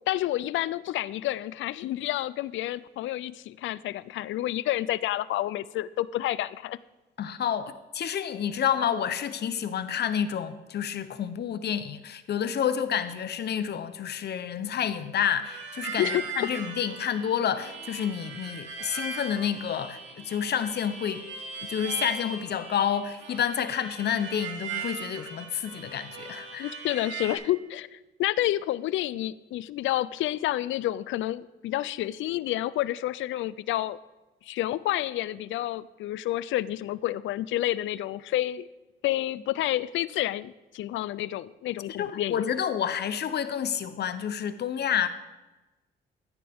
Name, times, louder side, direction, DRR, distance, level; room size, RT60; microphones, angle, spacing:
voice 1, 0.1-6.8 16.0-16.3 26.6-34.0 34.4-38.7 39.0-42.5, left 14 dB, 75° left, 0.4 m, -29 dB
voice 2, 7.2-21.2 21.6-26.7 42.0-45.1, left 8 dB, 55° left, 0.8 m, -29 dB
Harmonica, 15.4-27.4, right 5 dB, 70° right, 2.4 m, -39 dB
14.0 x 9.4 x 3.5 m
cardioid pair, 90°, 20 cm